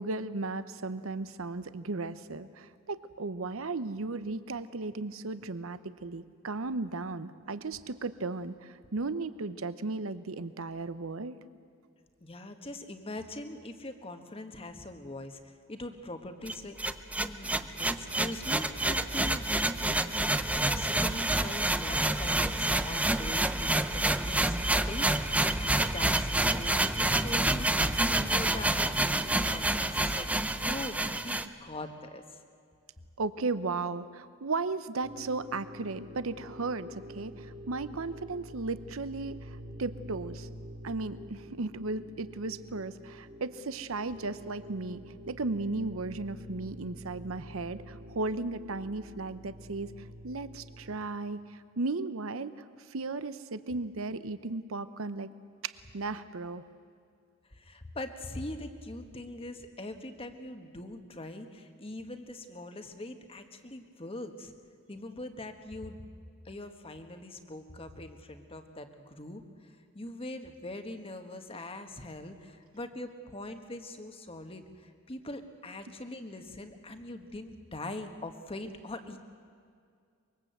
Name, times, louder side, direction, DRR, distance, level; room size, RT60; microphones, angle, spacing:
voice 1, 0.0-11.4 33.2-40.5 40.8-45.0 45.3-49.9 50.2-52.5 52.9-55.3 55.6-56.6, right 3 dB, 70° right, 13 dB, 0.8 m, -35 dB
voice 2, 12.2-16.8 17.2-20.0 20.5-25.1 25.6-32.4 57.5-64.5 64.9-66.0 66.4-79.2, left 1 dB, 25° left, 7 dB, 1.3 m, -42 dB
sound 1, 16.5-31.5, right 1 dB, 5° right, 0.6 m, -28 dB
sound 2, 35.0-51.0, equal, 50° right, 3.6 m, -47 dB
24.5 x 23.0 x 8.0 m, 2.2 s
head